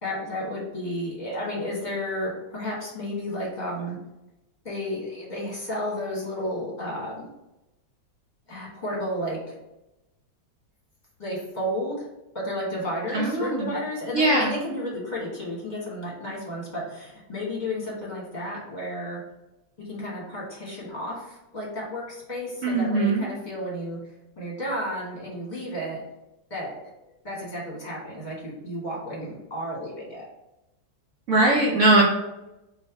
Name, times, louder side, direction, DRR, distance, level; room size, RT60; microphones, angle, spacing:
voice 1, 0.0-4.0 4.6-7.3 8.5-9.5 11.2-12.1 12.3-19.2 19.8-24.0 24.4-26.0 26.5-26.8 27.2-30.2, equal, 25° left, -5 dB, 1.3 m, -32 dB
voice 2, 13.1-13.7 14.1-14.5 22.6-23.3 31.3-32.0, right 2 dB, 65° right, -3 dB, 0.7 m, -20 dB
3.5 x 3.0 x 4.5 m, 0.95 s
omnidirectional pair, 2.1 m